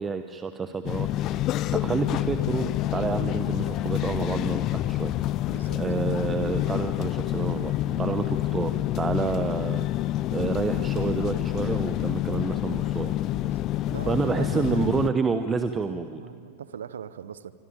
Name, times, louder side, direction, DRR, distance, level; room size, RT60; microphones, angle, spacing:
voice 1, 0.0-5.1 5.7-9.9 10.3-13.1 14.1-16.2, right 5 dB, 20° right, 10 dB, 1.0 m, -29 dB
sound 1, 0.9-15.1, left 14 dB, 35° left, 0.7 m, -28 dB
voice 2, 5.5-5.8 7.9-8.2 13.3-13.6 13.9-15.1 16.2-17.5, right 8 dB, 65° right, 16 dB, 0.9 m, -40 dB
25.5 x 25.5 x 8.9 m, 2.2 s
figure-of-eight pair, 90°, 0 cm